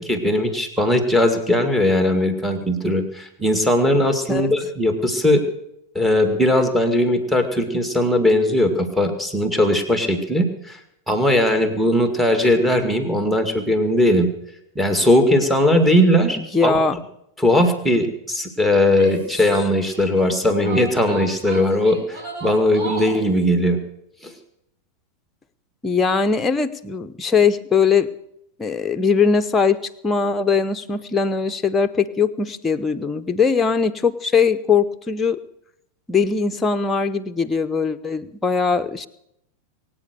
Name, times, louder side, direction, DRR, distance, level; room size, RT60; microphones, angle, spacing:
voice 1, 0.0-5.4 6.0-10.8 11.1-14.3 14.8-16.7 17.4-23.8 24.2-24.3, left 1 dB, 5° right, 7 dB, 2.1 m, -19 dB
voice 2, 16.4-17.0 19.3-19.4 25.8-28.1 28.6-35.4 36.1-39.1, left 5 dB, 15° left, 9 dB, 0.8 m, -20 dB
Female speech woman speaking / Yell, 18.9-20.1 20.6-23.3, right 2 dB, 40° right, 7.4 m, -34 dB
22.5 x 9.0 x 6.8 m, 0.80 s
figure-of-eight pair, 90°, 0 cm